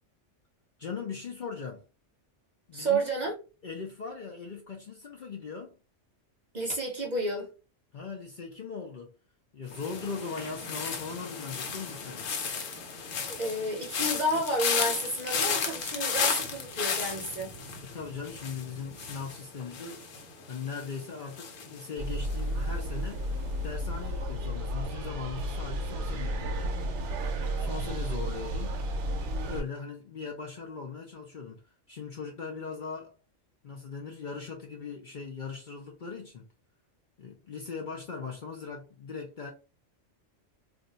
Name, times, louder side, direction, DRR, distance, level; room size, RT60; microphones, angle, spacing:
voice 1, 0.8-1.8 2.7-3.0 3.6-5.8 7.9-9.1 9.5-12.3 17.8-20.0 20.5-23.2 23.6-26.7 27.3-28.8 29.4-31.6 31.9-33.1 33.6-36.5 37.2-39.5, left 5 dB, 50° left, 0.6 m, -39 dB
voice 2, 2.7-3.3 6.5-7.5 13.3-17.5, right 1 dB, 45° right, 0.7 m, -31 dB
sound 1, 9.7-22.8 23.0-23.5, left 6 dB, 90° left, 1.1 m, -34 dB
sound 2, 22.0-29.6, right 1 dB, 70° right, 0.9 m, -32 dB
2.5 x 2.3 x 3.9 m
omnidirectional pair, 1.3 m